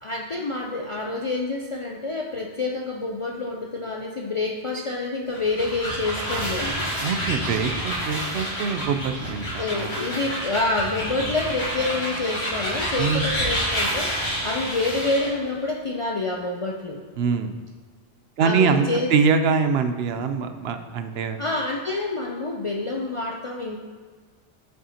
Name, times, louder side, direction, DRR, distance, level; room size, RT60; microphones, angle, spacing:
voice 1, 0.0-6.8 9.5-17.0 18.4-19.1 21.4-23.8, left 2 dB, 50° left, 0 dB, 0.4 m, -27 dB
sound 1, 5.3-15.4, equal, 90° left, 2.9 m, -28 dB
voice 2, 7.0-10.0 13.0-13.5 17.2-17.5 18.4-18.9 19.1-21.4, right 5 dB, 70° right, 8 dB, 0.8 m, -24 dB
7.9 x 7.6 x 2.8 m, 1.5 s
omnidirectional pair, 1.1 m